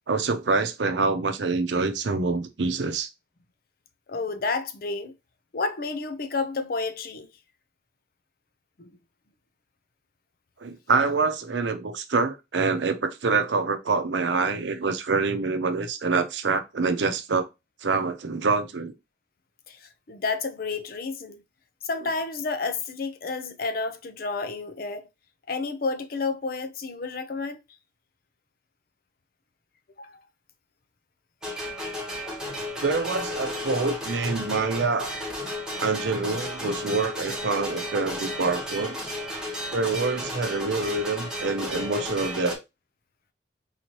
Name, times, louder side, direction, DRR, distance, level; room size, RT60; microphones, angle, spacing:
voice 1, 0.1-3.1 10.6-17.5 17.8-18.9 32.8-35.2 35.8-39.0 39.7-42.6, right 4 dB, 80° right, 0.6 m, -26 dB
voice 2, 4.1-5.1 5.5-7.3 8.8-8.9 19.7-21.4 21.8-25.1 25.5-27.6 30.0-30.2, left 3 dB, 55° left, 0.5 m, -30 dB
sound 1, 31.4-42.6, left 1 dB, 5° right, 1.2 m, -33 dB
3.9 x 2.9 x 3.0 m
head